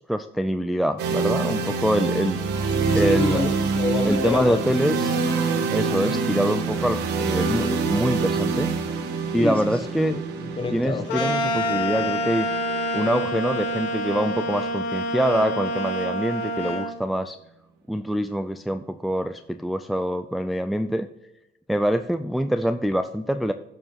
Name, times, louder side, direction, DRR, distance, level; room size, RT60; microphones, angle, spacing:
voice 1, 0.0-2.4 2.9-3.4 4.0-5.2 5.7-8.7 9.3-10.2 10.7-12.5 12.9-17.4 17.9-21.1 21.7-23.5, equal, ahead, 8 dB, 0.4 m, -25 dB
sound 1, 1.0-14.8, right 4 dB, 90° right, 1.6 m, -26 dB
voice 2, 2.6-4.6 9.3-9.6 10.4-11.0, left 4 dB, 30° left, 7 dB, 1.2 m, -27 dB
sound 2, 11.1-16.9, equal, 85° left, 1.6 m, -27 dB
11.0 x 4.9 x 5.7 m, 0.93 s
cardioid pair, 110°, 17 cm